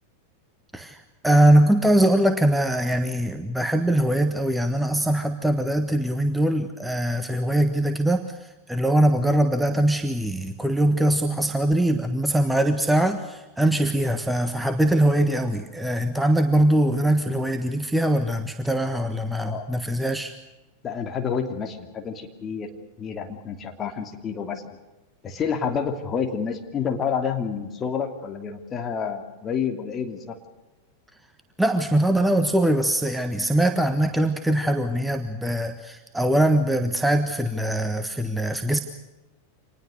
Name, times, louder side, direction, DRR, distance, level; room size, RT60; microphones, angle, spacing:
voice 1, 1.2-8.2 8.7-20.3 31.6-38.8, right 1 dB, 5° right, 8 dB, 1.4 m, -22 dB
voice 2, 19.3-19.7 20.8-22.7 23.0-24.6 25.2-30.4, left 6 dB, 25° left, 5 dB, 2.8 m, -29 dB
26.0 x 20.0 x 6.6 m, 1.1 s
figure-of-eight pair, 90°, 0 cm